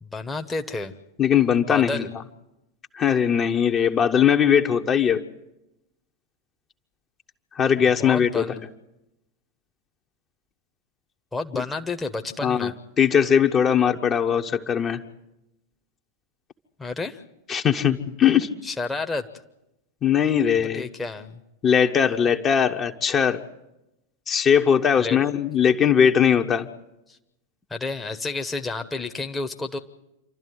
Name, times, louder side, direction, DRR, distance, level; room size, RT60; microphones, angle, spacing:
voice 1, 0.0-0.9 1.7-2.1 7.8-8.6 11.3-12.7 16.8-17.2 18.6-19.3 20.6-21.4 25.0-25.2 27.1-27.2 27.7-29.8, left 3 dB, 10° left, 5 dB, 1.1 m, -30 dB
voice 2, 1.2-2.0 2.9-5.2 7.6-8.5 12.4-15.0 17.5-18.5 20.0-20.9 21.6-23.4 24.3-26.7, left 8 dB, 25° left, 5 dB, 1.1 m, -20 dB
27.5 x 12.5 x 9.5 m, 0.90 s
figure-of-eight pair, 90°, 0 cm